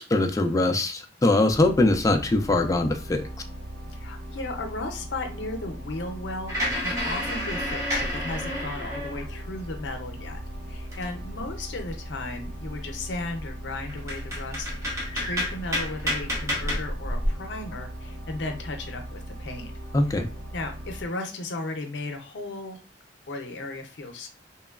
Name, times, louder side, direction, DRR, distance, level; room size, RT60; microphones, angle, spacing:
voice 1, 0.1-3.3 19.9-20.3, left 2 dB, 20° left, 6 dB, 0.3 m, -22 dB
sound 1, 1.5-21.1, right 1 dB, 75° right, 0.6 m, -39 dB
voice 2, 3.9-10.4 10.7-19.7 20.5-22.8 23.3-24.3, left 2 dB, 75° left, 5 dB, 0.5 m, -35 dB
sound 2, 6.5-9.5 10.0-11.5 11.9-12.0 12.3-12.8 13.5-13.6 13.9-17.3, equal, 20° right, 0.8 m, -30 dB
2.9 x 2.1 x 2.3 m, 0.34 s
head